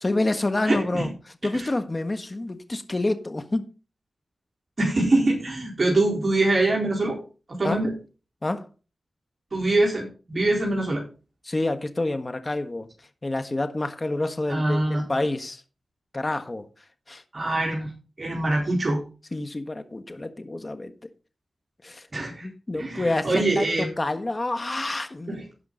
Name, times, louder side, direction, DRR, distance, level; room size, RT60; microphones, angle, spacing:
voice 1, 0.0-1.1 1.4-3.7 7.6-7.8 8.4-8.7 11.4-12.9 13.2-15.6 16.1-16.7 17.1-17.2 19.3-20.9 21.8-25.4, left 2 dB, 35° left, 1.4 m, -28 dB
voice 2, 0.7-1.1 1.5-1.7 4.8-7.2 7.5-7.9 9.5-11.0 14.5-15.0 17.3-17.9 18.2-19.0 22.1-22.5 22.7-23.9 25.3-25.4, right 2 dB, 45° right, 4.2 m, -24 dB
16.5 x 5.8 x 3.8 m
cardioid pair, 55°, 0 cm